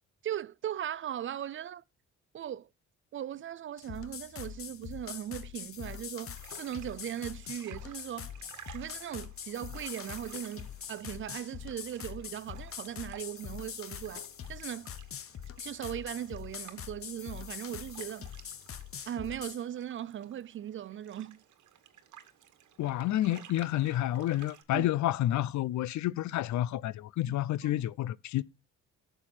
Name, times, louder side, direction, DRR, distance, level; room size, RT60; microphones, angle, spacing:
voice 1, 0.2-1.8 2.3-2.7 3.1-8.3 8.7-14.9 15.6-18.3 19.1-21.4 24.7-24.9 27.3-27.4 27.6-27.8, right 10 dB, 45° right, 0.4 m, -39 dB
sound 1, 3.8-19.6, left 9 dB, 45° left, 0.8 m, -43 dB
sound 2, 6.3-24.6, right 10 dB, 75° right, 1.4 m, -56 dB
voice 2, 22.8-28.4, left 14 dB, 70° left, 0.5 m, -30 dB
11.5 x 6.8 x 4.3 m
cardioid pair, 90°, 30 cm